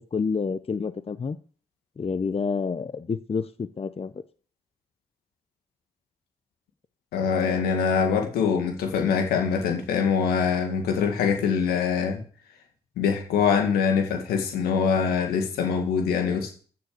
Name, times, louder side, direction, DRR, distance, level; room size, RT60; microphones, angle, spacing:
voice 1, 0.1-1.4 2.0-4.2, left 5 dB, 40° left, 0.8 m, -28 dB
voice 2, 7.1-12.2 13.0-16.5, left 6 dB, 90° left, 2.1 m, -24 dB
14.5 x 6.9 x 6.7 m
supercardioid pair, 45°, 15 cm